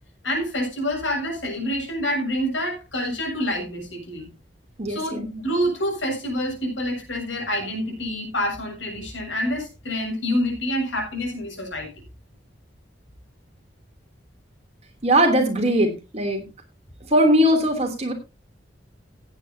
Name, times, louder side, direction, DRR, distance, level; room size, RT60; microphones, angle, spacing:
voice 1, 0.2-4.3 4.9-11.9, equal, 90° left, 1 dB, 7.0 m, -27 dB
voice 2, 4.8-5.3 15.0-16.4 17.1-18.1, equal, 35° right, 4 dB, 3.1 m, -20 dB
16.5 x 9.2 x 2.8 m, 0.26 s
head